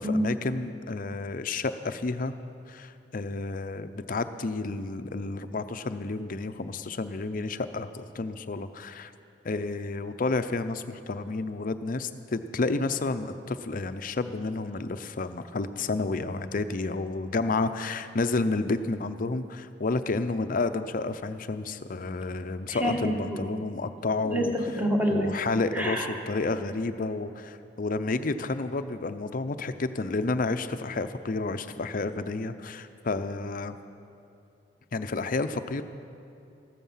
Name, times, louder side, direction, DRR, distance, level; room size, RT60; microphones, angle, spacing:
voice 1, 0.0-2.4 2.7-9.1 9.4-24.5 25.1-33.8 34.9-35.8, left 3 dB, 50° left, 10 dB, 0.6 m, -30 dB
voice 2, 22.7-23.4 24.2-24.4 24.8-25.3 25.7-26.1, equal, 10° right, 0 dB, 1.6 m, -27 dB
15.0 x 13.0 x 5.6 m, 2.7 s
head